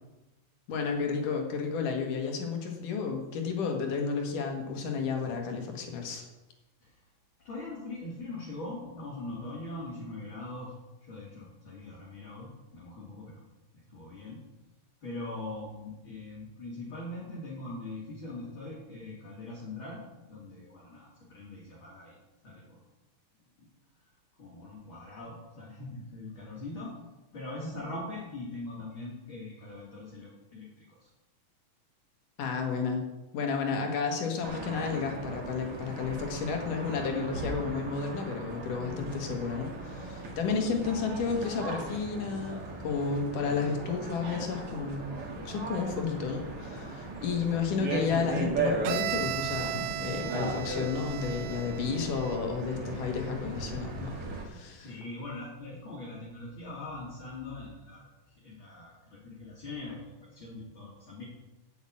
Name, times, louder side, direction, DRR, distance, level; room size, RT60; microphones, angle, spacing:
voice 1, 0.7-6.3 32.4-33.0 33.3-45.2 45.4-54.1 54.4-55.0, left 5 dB, 70° left, 3 dB, 3.1 m, -32 dB
voice 2, 7.4-10.7 11.0-13.4 13.7-14.4 15.0-20.0 20.3-22.2 22.4-22.6 23.6-23.7 24.4-26.9 27.3-31.1 54.7-61.2, left 2 dB, 40° left, -6 dB, 3.2 m, -42 dB
sound 1, 34.4-54.4, right 3 dB, 50° right, 2.6 m, -37 dB
Bowed string instrument, 48.9-52.6, right 14 dB, 90° right, 2.3 m, -36 dB
8.6 x 8.1 x 8.7 m, 1.0 s
omnidirectional pair, 3.9 m